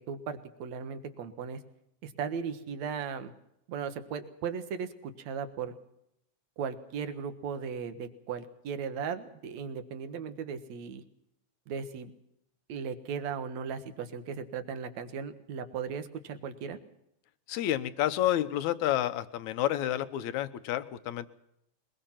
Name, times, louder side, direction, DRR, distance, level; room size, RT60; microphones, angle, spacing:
voice 1, 0.0-1.6 2.0-3.3 3.7-5.7 6.6-11.0 11.7-12.1 12.7-16.8, right 6 dB, 65° right, 9 dB, 2.6 m, -37 dB
voice 2, 17.5-21.3, left 12 dB, 75° left, 11 dB, 2.3 m, -29 dB
22.5 x 21.0 x 5.9 m, 0.79 s
omnidirectional pair, 3.6 m